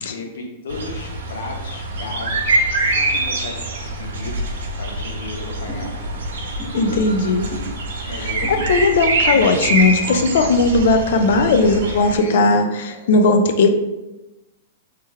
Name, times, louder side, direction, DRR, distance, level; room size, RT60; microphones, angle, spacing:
voice 1, 0.0-3.7 4.0-4.4 4.8-5.9 6.5-7.3 8.0-8.7 11.5-12.6 12.8-13.2, left 3 dB, 70° left, 1 dB, 0.9 m, -34 dB
sound 1, 0.7-12.2, right 2 dB, 85° right, 1.0 m, -24 dB
sound 2, 5.7-5.8 6.6-6.7 7.5-7.7 8.4-8.6 9.3-9.5 10.3-10.4, left 2 dB, 15° left, 1.1 m, -33 dB
voice 2, 6.8-7.5 8.1-13.7, left 3 dB, 50° left, 7 dB, 0.4 m, -17 dB
3.3 x 3.3 x 3.2 m, 1.0 s
supercardioid pair, 180°, 0 cm